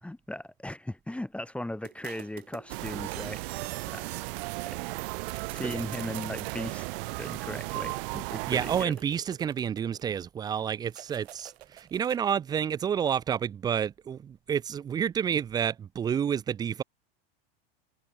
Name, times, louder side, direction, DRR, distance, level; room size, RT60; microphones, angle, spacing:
voice 1, 0.0-4.1 4.7-4.8 5.5-8.9, left 1 dB, 5° left, 1.6 m, -38 dB
sound 1, 1.9-4.7 5.0-6.6 7.3-10.2 10.9-12.4, right 14 dB, 85° right, 2.1 m, -47 dB
sound 2, 2.7-8.9, right 26 dB, 60° right, 2.0 m, -35 dB
voice 2, 8.4-16.8, right 8 dB, 15° right, 0.3 m, -29 dB
supercardioid pair, 135°, 30 cm